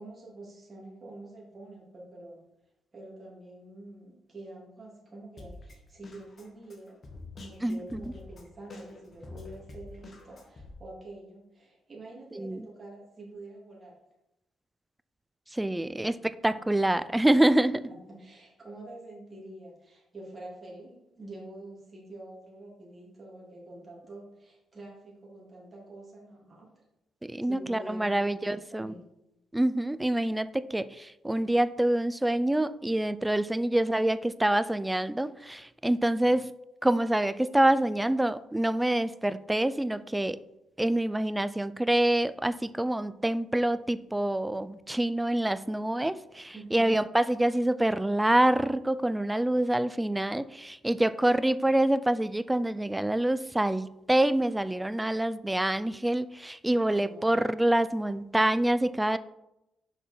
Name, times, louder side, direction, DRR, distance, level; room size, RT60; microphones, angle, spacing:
voice 1, 0.0-2.4 2.9-7.0 7.4-14.0 17.9-26.8 27.4-28.3 28.7-29.0 46.5-46.9 56.9-57.4, right 2 dB, 30° right, -4 dB, 2.7 m, -47 dB
Drum kit, 5.4-10.7, left 2 dB, 40° left, 1.6 m, -47 dB
voice 2, 7.6-8.0 12.4-12.6 15.5-17.9 27.2-28.9 29.5-36.5 36.8-40.4 40.8-59.2, right 1 dB, 10° right, 15 dB, 0.3 m, -26 dB
6.2 x 5.4 x 4.4 m, 0.89 s
cardioid pair, 90°, 0 cm